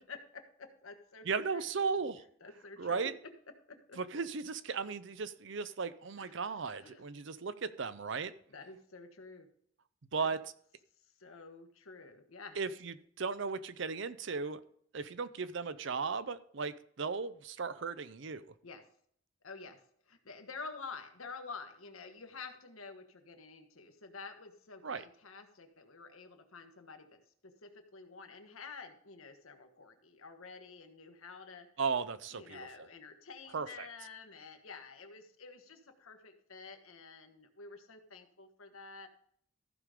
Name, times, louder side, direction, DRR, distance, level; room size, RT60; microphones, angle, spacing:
voice 1, 0.1-1.6 2.4-3.1 3.7-4.0 6.2-7.0 8.5-9.5 10.2-10.3 11.2-12.6 18.6-18.8 19.4-19.8 20.1-31.7 32.3-39.1, left 4 dB, 85° left, 6 dB, 1.4 m, -49 dB
voice 2, 1.2-2.2 2.8-3.1 4.0-8.3 10.1-10.4 12.6-14.6 14.9-18.4 24.8-25.0 31.8-32.7 33.5-33.9, right 5 dB, 60° right, 14 dB, 0.6 m, -36 dB
14.5 x 5.1 x 5.0 m, 0.64 s
head